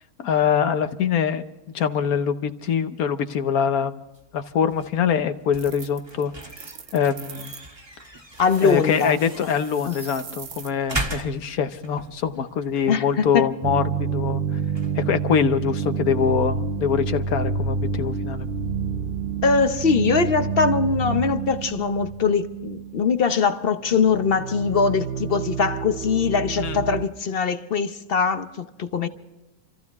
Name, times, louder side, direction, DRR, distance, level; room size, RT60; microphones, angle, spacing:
voice 1, 0.2-1.4 1.7-4.1 4.3-6.3 6.9-7.6 8.6-14.6 14.9-18.5 26.6-26.8, left 7 dB, 75° left, 1.4 m, -24 dB
sound 1, 4.1-16.8, right 1 dB, 20° right, 1.4 m, -39 dB
sound 2, 5.6-7.7 8.3-10.7, right 7 dB, 75° right, 1.5 m, -42 dB
voice 2, 8.4-9.1 9.8-10.0 12.4-12.5 12.9-13.5 19.4-29.1, left 5 dB, 45° left, 0.9 m, -22 dB
sound 3, 13.6-23.6 23.8-27.1, right 5 dB, 50° right, 0.7 m, -28 dB
27.5 x 14.5 x 3.6 m
omnidirectional pair, 1.6 m